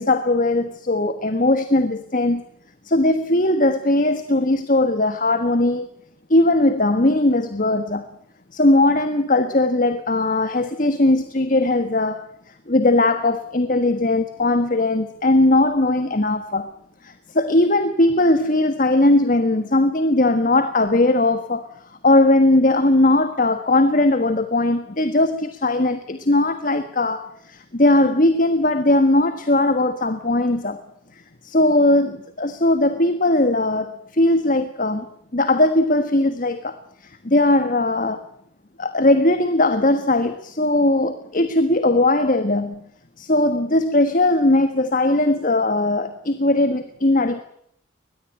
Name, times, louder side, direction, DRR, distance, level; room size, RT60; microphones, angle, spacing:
voice 1, 0.0-2.4 2.8-5.9 6.3-8.0 8.5-12.2 12.7-16.7 17.0-21.7 22.0-30.8 31.4-35.0 35.3-36.8 37.0-38.3 38.8-42.8 43.2-47.4, left 2 dB, 45° left, 1.4 m, -19 dB
22.5 x 21.0 x 9.0 m
head